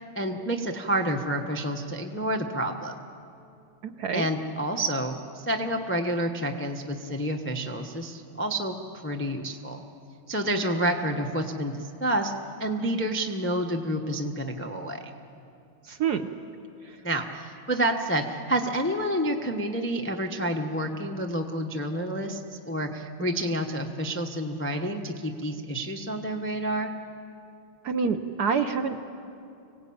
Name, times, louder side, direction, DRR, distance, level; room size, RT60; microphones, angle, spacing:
voice 1, 0.1-3.0 4.1-8.8 9.0-9.8 10.3-12.3 12.6-15.0 17.0-26.9, right 1 dB, 15° left, 3 dB, 0.5 m, -29 dB
voice 2, 3.8-4.3 15.8-16.2 16.8-17.0 27.8-29.0, right 6 dB, 60° right, 7 dB, 1.2 m, -27 dB
25.5 x 18.0 x 8.7 m, 2.6 s
omnidirectional pair, 2.3 m